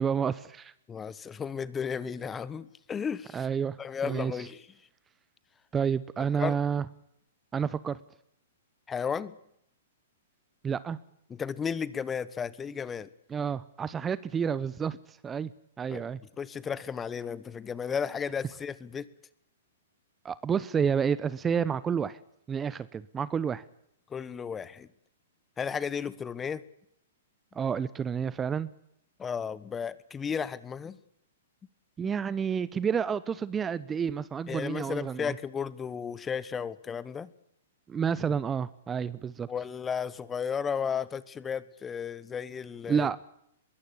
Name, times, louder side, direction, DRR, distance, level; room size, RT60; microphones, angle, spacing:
voice 1, 0.0-0.7 3.3-3.8 4.0-4.3 5.7-6.8 7.5-8.0 10.6-11.0 13.3-15.5 15.8-16.2 20.2-22.2 22.5-23.6 27.5-28.7 32.0-35.4 37.9-39.5 42.9-43.2, right 7 dB, 15° right, 18 dB, 0.8 m, -29 dB
voice 2, 0.9-3.5 3.8-4.7 6.2-6.6 8.9-9.4 11.3-13.1 15.9-16.1 16.4-19.1 24.1-24.9 25.6-26.6 29.2-31.0 32.0-32.1 34.5-37.3 39.5-43.1, left 7 dB, 15° left, 18 dB, 1.2 m, -34 dB
22.0 x 17.0 x 9.9 m, 0.76 s
hypercardioid pair, 115°, 0 cm